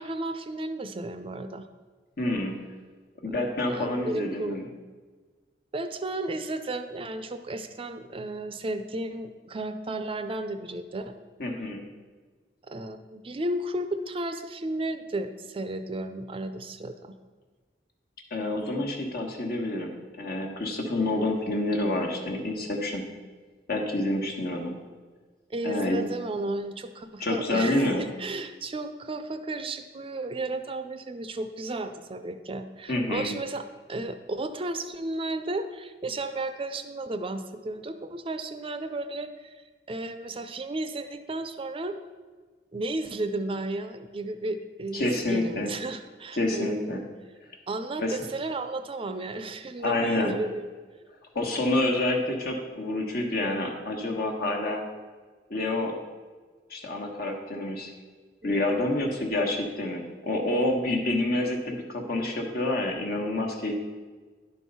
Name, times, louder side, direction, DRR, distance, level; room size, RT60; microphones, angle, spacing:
voice 1, 0.0-1.7 3.2-3.4 3.7-4.6 5.7-11.1 12.7-17.1 25.5-39.6 39.9-42.0 42.7-47.0 47.7-50.7 58.4-58.6, right 2 dB, 30° right, 9 dB, 0.5 m, -33 dB
voice 2, 2.2-2.6 3.2-4.6 11.4-11.8 18.3-23.0 23.7-24.7 25.6-26.0 27.2-28.0 32.9-33.3 44.9-45.7 46.3-47.0 48.0-48.2 49.8-50.3 51.3-54.8 55.5-55.9 56.7-57.9 58.4-63.7, left 1 dB, 60° left, 2 dB, 1.3 m, -28 dB
10.5 x 4.6 x 5.5 m, 1.4 s
head